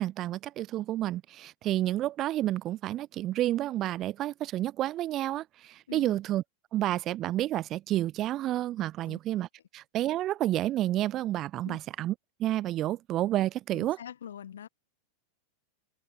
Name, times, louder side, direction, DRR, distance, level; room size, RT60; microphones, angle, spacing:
voice 1, 0.0-6.4 6.7-9.5 9.7-12.1 12.4-14.0, right 14 dB, 35° right, 0.3 m, -30 dB
voice 2, 13.7-14.7, left 9 dB, 65° left, 1.6 m, -43 dB
figure-of-eight pair, 90°, 0 cm